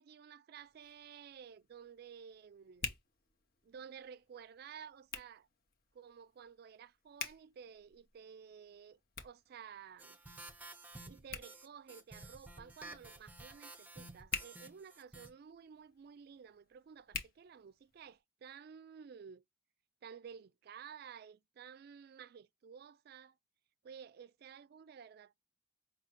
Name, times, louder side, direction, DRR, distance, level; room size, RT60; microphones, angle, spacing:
voice 1, 0.0-2.9 3.6-5.5 5.9-10.2 11.1-19.4 20.0-23.4 23.8-25.4, right 7 dB, 55° right, 0.3 m, -53 dB
Hands, 0.5-18.2, left 6 dB, 50° left, 0.7 m, -50 dB
sound 1, 10.0-15.3, right 2 dB, 10° right, 0.6 m, -52 dB
4.9 x 2.3 x 2.9 m
head